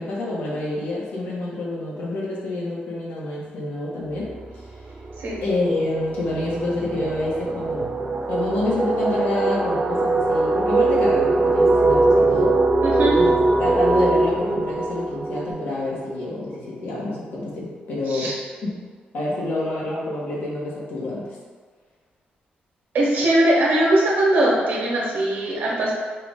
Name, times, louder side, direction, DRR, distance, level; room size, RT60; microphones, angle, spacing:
voice 1, 0.0-4.7 5.4-7.9 8.3-12.6 13.1-18.4 18.6-18.7 19.1-21.4, left 2 dB, 75° left, -5 dB, 1.2 m, -27 dB
sound 1, 4.2-4.4 4.8-16.3, right 2 dB, 30° right, 0.4 m, -21 dB
voice 2, 12.8-13.2 18.1-18.3 22.9-25.9, right 1 dB, 75° right, -4 dB, 1.2 m, -20 dB
4.6 x 2.5 x 3.6 m, 1.5 s
cardioid pair, 130°, 3 cm